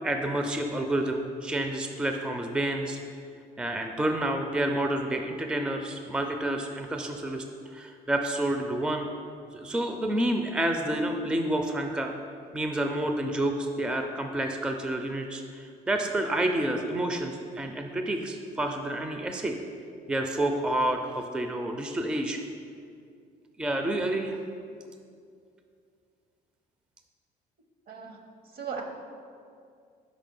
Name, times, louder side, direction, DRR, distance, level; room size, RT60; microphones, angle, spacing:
voice 1, 0.0-3.0 3.6-7.5 7.7-9.1 9.5-12.1 12.5-19.6 20.1-22.4 23.6-24.4, right 1 dB, 5° right, 5 dB, 0.4 m, -29 dB
voice 2, 27.9-28.8, right 6 dB, 60° right, 3 dB, 0.9 m, -38 dB
5.0 x 5.0 x 5.3 m, 2.3 s
cardioid pair, 110°, 17 cm